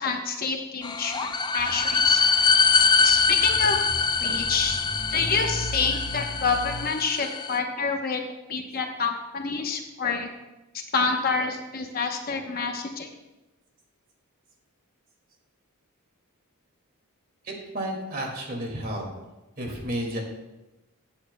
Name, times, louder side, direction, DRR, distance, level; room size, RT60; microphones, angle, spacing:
voice 1, 0.0-2.2 3.0-3.8 4.2-4.8 5.1-8.2 8.5-10.3 10.7-13.1, left 4 dB, 40° left, 3 dB, 0.9 m, -27 dB
sound 1, 0.8-7.6, left 5 dB, 20° left, 0.3 m, -23 dB
sound 2, 1.6-6.8, equal, 10° right, 1.1 m, -37 dB
voice 2, 17.4-19.1 19.6-20.2, right 1 dB, 40° right, 0 dB, 2.1 m, -32 dB
16.0 x 8.7 x 2.2 m, 1.0 s
head